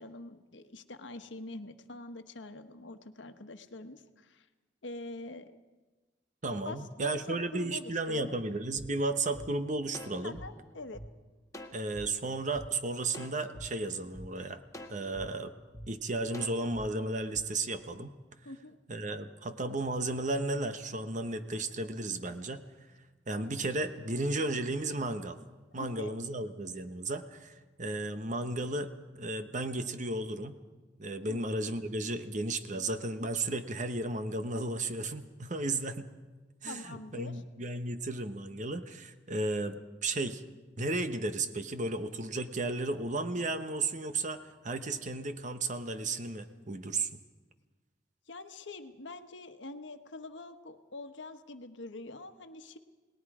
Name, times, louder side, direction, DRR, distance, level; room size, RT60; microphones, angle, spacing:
voice 1, 0.0-4.5 4.8-5.6 6.6-8.3 10.2-11.0 18.4-18.8 25.7-26.3 31.3-31.4 36.6-37.4 48.3-52.8, left 2 dB, 75° left, 8 dB, 1.2 m, -45 dB
voice 2, 6.4-10.4 11.7-14.6 14.9-15.5 15.9-18.1 18.9-22.6 23.3-25.4 25.7-30.5 31.0-36.1 36.6-40.4 40.8-47.2, right 2 dB, 40° right, 9 dB, 1.1 m, -34 dB
sound 1, 8.7-8.9 9.3-9.5 9.9-11.1 11.5-12.1 12.5-12.7 13.1-13.7 14.1-14.3 14.7-15.3 15.7-15.9 16.3-16.9 17.3-17.4, equal, 15° left, 1.4 m, -45 dB
29.0 x 19.5 x 4.9 m, 1.2 s
head